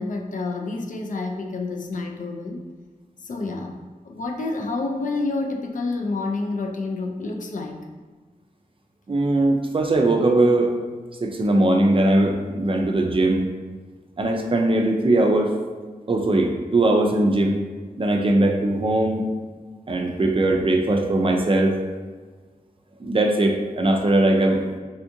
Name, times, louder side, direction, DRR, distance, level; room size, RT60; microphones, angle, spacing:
voice 1, 0.0-2.7 3.2-3.8 4.1-7.8, left 3 dB, 60° left, 2 dB, 0.4 m, -28 dB
voice 2, 9.1-10.7 11.2-13.5 14.2-15.5 16.1-17.6 18.0-19.3 19.9-21.8 23.0-24.6, right 2 dB, 35° right, 2 dB, 0.4 m, -20 dB
3.5 x 2.5 x 2.6 m, 1.4 s
wide cardioid pair, 85°, 15 cm